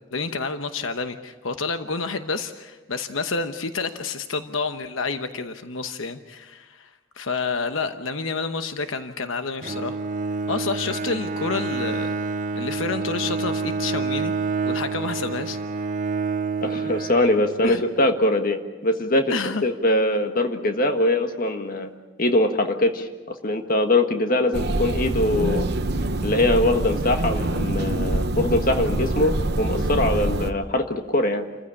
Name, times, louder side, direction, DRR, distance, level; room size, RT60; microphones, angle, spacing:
voice 1, 0.1-10.0 10.5-12.1 12.5-14.3 14.6-15.6 17.6-17.8 19.3-19.6, left 4 dB, 80° left, 8 dB, 1.0 m, -29 dB
Bowed string instrument, 9.6-17.8, right 4 dB, 40° right, 0.6 m, -28 dB
voice 2, 16.6-19.3 19.6-21.9 22.2-23.1 23.4-25.7 26.2-31.4, left 1 dB, 45° left, 5 dB, 1.6 m, -22 dB
sound 1, 24.5-30.5, right 2 dB, 55° right, 1.0 m, -25 dB
28.0 x 15.0 x 8.6 m, 1.3 s
head